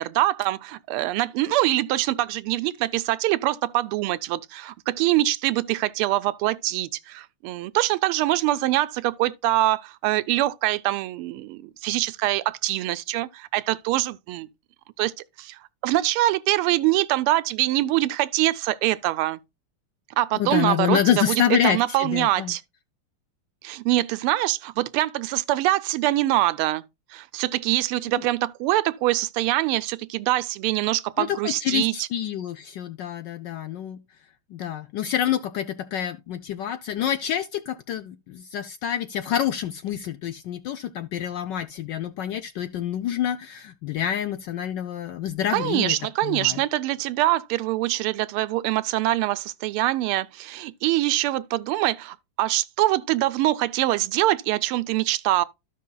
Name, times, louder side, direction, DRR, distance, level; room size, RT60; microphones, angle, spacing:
voice 1, 0.0-14.5 15.0-15.1 15.4-19.4 20.2-22.6 23.6-26.8 27.1-32.1 45.5-55.4, right 16 dB, 85° right, 1.5 m, -24 dB
voice 2, 20.4-22.5 28.1-28.2 31.2-34.0 34.5-46.0 46.2-46.6, left 10 dB, 75° left, 1.1 m, -27 dB
13.5 x 5.6 x 2.2 m
omnidirectional pair, 2.4 m